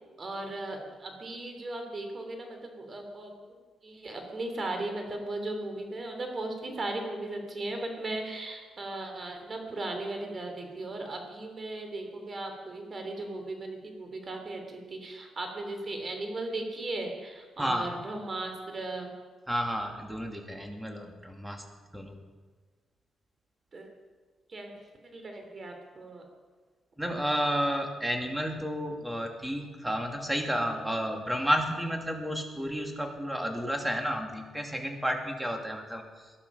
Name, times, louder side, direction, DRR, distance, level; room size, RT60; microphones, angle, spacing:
voice 1, 0.2-3.4 3.8-19.1 23.7-23.9 24.5-24.8 25.1-26.2, right 2 dB, 40° right, 4 dB, 3.2 m, -37 dB
voice 2, 17.6-18.0 19.5-21.6 21.9-22.2 27.0-36.3, equal, 5° right, 3 dB, 2.4 m, -31 dB
18.5 x 12.0 x 5.6 m, 1.4 s
cardioid pair, 90°, 0 cm